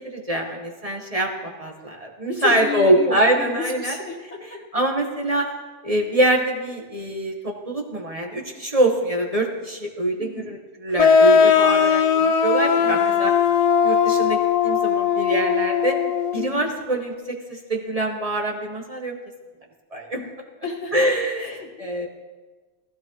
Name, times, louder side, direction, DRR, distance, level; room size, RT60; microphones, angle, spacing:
voice 1, 0.0-3.9 4.4-5.4 5.8-13.3 13.8-16.0 16.3-19.2 19.9-20.2 20.9-22.1, right 1 dB, 30° right, 0 dB, 1.4 m, -24 dB
voice 2, 2.3-4.6 5.3-5.5 10.2-10.6 12.8-13.3 16.4-16.7 20.1-20.2 20.6-20.9 21.4-21.9, left 3 dB, 65° left, -1 dB, 1.9 m, -32 dB
sound 1, 11.0-16.5, left 6 dB, 50° left, 0.4 m, -18 dB
16.5 x 15.0 x 3.1 m, 1.3 s
omnidirectional pair, 1.2 m